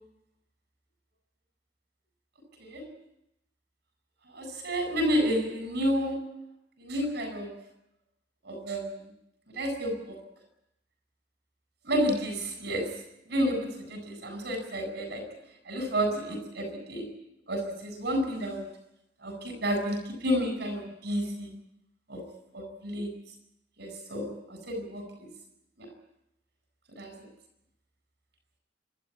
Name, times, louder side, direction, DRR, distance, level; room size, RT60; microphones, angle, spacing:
voice 1, 4.3-6.3 6.8-7.6 8.4-9.0 9.5-10.2 11.8-13.0 13.3-15.3 15.7-17.1 17.5-18.7 19.2-21.5 22.1-22.2 22.5-23.1 23.8-25.3 25.8-25.9 26.9-27.1, equal, 60° right, 5 dB, 7.9 m, -31 dB
26.5 x 13.0 x 9.9 m, 0.83 s
head